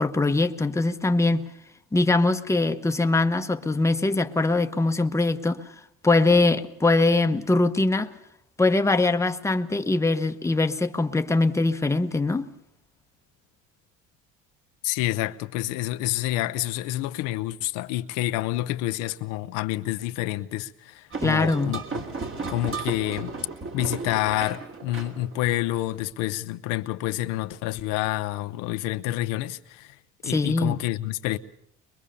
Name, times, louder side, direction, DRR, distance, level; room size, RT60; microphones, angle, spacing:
voice 1, 0.0-1.5 1.9-5.6 6.0-8.1 8.6-12.5 21.2-21.8 30.3-30.8, left 2 dB, 10° left, 1.0 m, -22 dB
voice 2, 14.8-22.0 22.5-23.3 23.7-30.0 30.2-31.4, left 16 dB, 85° left, 0.8 m, -28 dB
sound 1, 21.1-26.0, right 4 dB, 40° right, 3.0 m, -34 dB
23.0 x 22.0 x 6.9 m
supercardioid pair, 95°, 31 cm